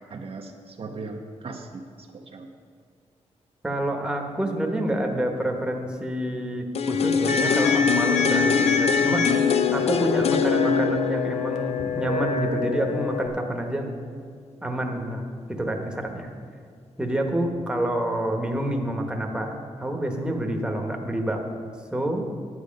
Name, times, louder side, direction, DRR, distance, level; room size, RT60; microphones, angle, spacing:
voice 1, 0.1-2.5 20.8-21.1, right 3 dB, 55° right, 3 dB, 0.8 m, -39 dB
voice 2, 3.6-13.9 14.6-16.3 17.0-21.4 21.9-22.3, right 1 dB, 5° right, 2 dB, 1.1 m, -28 dB
sound 1, 6.7-12.7 13.0-13.1, left 7 dB, 60° left, 0.5 m, -24 dB
sound 2, 7.3-13.3, left 3 dB, 90° left, 0.9 m, -27 dB
11.0 x 8.0 x 5.2 m, 2.1 s
wide cardioid pair, 120°, 12 cm